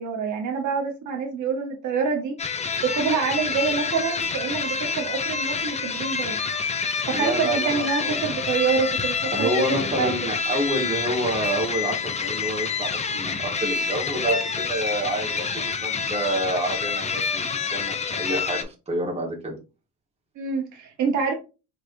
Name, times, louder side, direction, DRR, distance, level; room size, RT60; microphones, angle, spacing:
voice 1, 0.0-2.4 2.8-6.4 7.1-10.1 20.4-21.3, right 5 dB, 60° right, 3 dB, 0.9 m, -26 dB
sound 1, 2.4-18.6, left 5 dB, 20° left, 0.4 m, -28 dB
voice 2, 7.1-8.3 9.3-19.6, right 1 dB, 20° right, 0 dB, 1.3 m, -28 dB
4.6 x 3.2 x 2.5 m, 0.31 s
cardioid pair, 130°, 33 cm